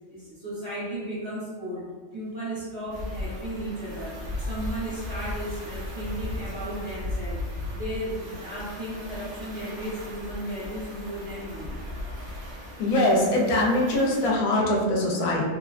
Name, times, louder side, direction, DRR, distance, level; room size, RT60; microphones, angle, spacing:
voice 1, 0.1-7.4 7.7-11.8, right 1 dB, 50° right, -10 dB, 1.4 m, -35 dB
sound 1, 2.9-14.3, left 1 dB, 75° right, 1.2 m, -36 dB
voice 2, 12.8-15.5, left 1 dB, 80° left, -1 dB, 1.0 m, -22 dB
3.1 x 2.2 x 2.4 m, 1.4 s
omnidirectional pair, 1.4 m